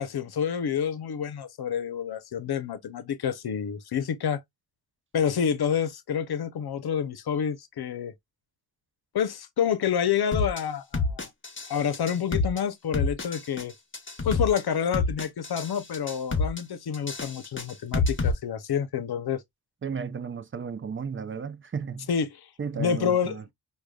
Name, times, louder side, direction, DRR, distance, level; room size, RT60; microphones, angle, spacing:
voice 1, 0.0-4.4 5.1-8.1 9.1-11.3 11.7-13.7 14.2-19.4 22.1-22.5 22.7-23.4, left 8 dB, 70° left, 0.7 m, -28 dB
sound 1, 10.3-10.6 10.9-11.7 11.9-12.6 12.9-13.6 13.9-14.6 14.9-15.7 15.9-16.6 16.9-18.3, left 3 dB, 30° left, 1.0 m, -27 dB
voice 2, 19.8-22.1 22.6-23.5, right 6 dB, 30° right, 0.5 m, -34 dB
4.8 x 2.3 x 2.2 m
cardioid pair, 60°, 40 cm